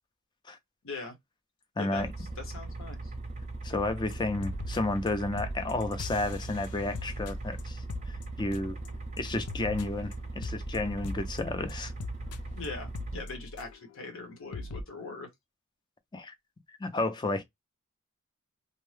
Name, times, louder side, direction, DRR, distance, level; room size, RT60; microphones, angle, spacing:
voice 1, 0.8-1.1 1.8-3.1 12.5-15.3, left 3 dB, 65° left, 1.0 m, -41 dB
voice 2, 1.8-2.1 3.6-8.8 9.2-11.9 16.1-16.3 16.8-17.4, left 2 dB, 20° left, 0.4 m, -32 dB
sound 1, 1.9-13.2, right 2 dB, 30° right, 0.6 m, -39 dB
sound 2, 4.1-4.2 4.4-5.1 5.4-8.9 9.2-13.9 14.2-14.3 14.5-14.8, left 2 dB, 85° left, 0.4 m, -41 dB
2.6 x 2.1 x 3.1 m
head